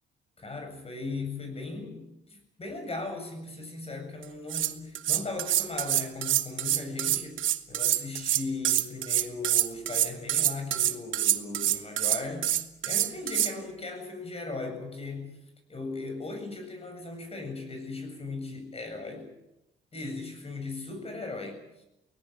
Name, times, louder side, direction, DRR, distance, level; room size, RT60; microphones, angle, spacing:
voice 1, 0.4-12.6 12.9-15.4 15.7-19.3 19.9-21.6, left 3 dB, 30° left, 7 dB, 7.7 m, -38 dB
sound 1, 4.2-4.3 4.5-13.5, right 12 dB, 75° right, 1.3 m, -26 dB
24.0 x 18.0 x 8.8 m, 0.90 s
cardioid pair, 90°, 20 cm